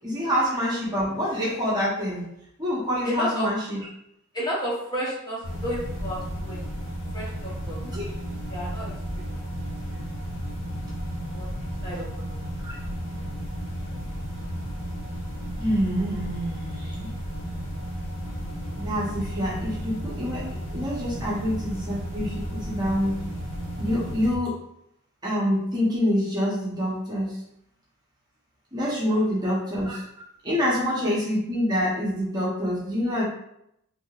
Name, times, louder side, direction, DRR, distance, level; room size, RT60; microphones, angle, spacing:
voice 1, 0.0-2.3 2.6-3.8 7.8-8.0 12.6-12.7 15.6-17.1 18.8-23.2 23.8-24.6 25.2-27.4 28.7-30.0 30.4-33.2, equal, 20° right, -6 dB, 0.8 m, -26 dB
voice 2, 3.0-3.5 4.3-6.7 7.1-7.8 8.5-9.3 11.3-12.4 29.1-29.2, equal, 20° left, -7 dB, 0.9 m, -32 dB
sound 1, 5.4-24.4, equal, 60° left, 0.7 m, -33 dB
3.5 x 2.7 x 2.3 m, 0.77 s
head